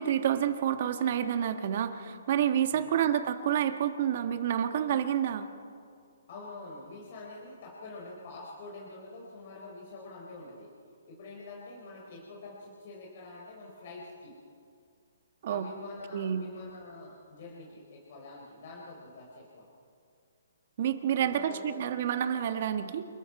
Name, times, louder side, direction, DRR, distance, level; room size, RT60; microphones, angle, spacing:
voice 1, 0.0-5.5 15.4-15.7 16.1-16.4 20.8-23.1, right 9 dB, 45° right, 8 dB, 1.4 m, -29 dB
voice 2, 6.3-10.7 11.1-14.4 15.5-19.7 21.2-21.9, left 2 dB, 45° left, -2 dB, 3.8 m, -46 dB
28.0 x 21.0 x 4.8 m, 2.3 s
hypercardioid pair, 160°, 0 cm